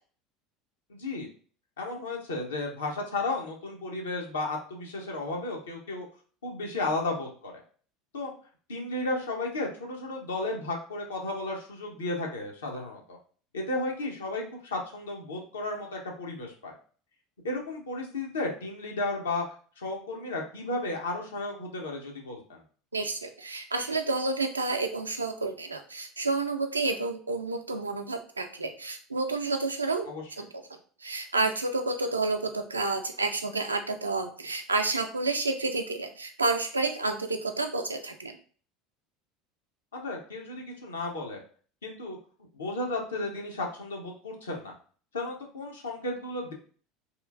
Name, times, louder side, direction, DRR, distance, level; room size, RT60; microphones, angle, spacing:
voice 1, 0.9-1.3 1.8-6.1 6.4-7.6 8.1-8.3 8.7-13.2 13.5-16.8 17.4-19.4 19.8-22.6 30.1-30.2 39.9-41.4 41.8-42.2 42.5-44.7 45.1-46.5, left 2 dB, 75° left, 0 dB, 0.7 m, -33 dB
voice 2, 22.9-30.1 30.4-30.5 31.0-38.4, right 3 dB, 85° right, 5 dB, 0.3 m, -30 dB
2.9 x 2.4 x 2.4 m, 0.43 s
figure-of-eight pair, 70°, 0 cm